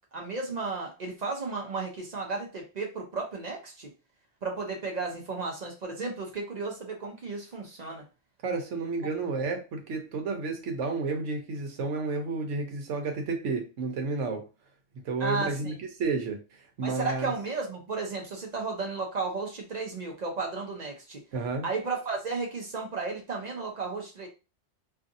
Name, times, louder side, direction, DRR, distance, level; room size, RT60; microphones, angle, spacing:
voice 1, 0.1-3.9 4.4-8.0 15.2-15.8 16.8-21.2 21.6-24.3, right 4 dB, 50° right, 1 dB, 0.5 m, -34 dB
voice 2, 8.4-14.4 15.0-16.4 16.8-17.3 21.3-21.7, right 4 dB, 75° right, 4 dB, 1.0 m, -31 dB
2.6 x 2.5 x 2.6 m, 0.31 s
omnidirectional pair, 1.3 m